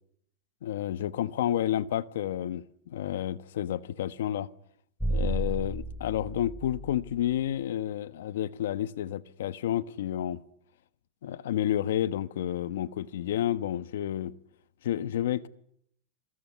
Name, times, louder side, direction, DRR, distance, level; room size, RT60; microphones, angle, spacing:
voice 1, 0.6-4.5 5.1-10.4 11.2-14.3 14.8-15.5, left 11 dB, 90° left, 1.2 m, -30 dB
sound 1, 5.0-7.4, right 1 dB, ahead, 3.4 m, -33 dB
27.5 x 22.0 x 9.7 m
supercardioid pair, 155°, 0 cm